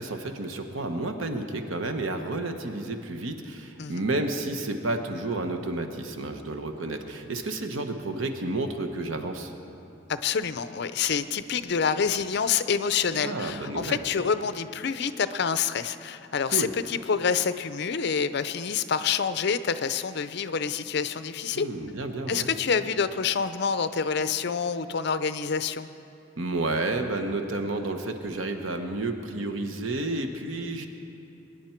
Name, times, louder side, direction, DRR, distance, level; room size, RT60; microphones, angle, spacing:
voice 1, 0.0-9.5 13.2-14.0 16.5-16.7 21.5-22.5 26.4-30.9, right 2 dB, 85° right, 6 dB, 0.9 m, -31 dB
voice 2, 10.1-21.7 22.3-25.9, left 6 dB, 55° left, 12 dB, 0.5 m, -27 dB
22.0 x 10.0 x 4.5 m, 2.8 s
head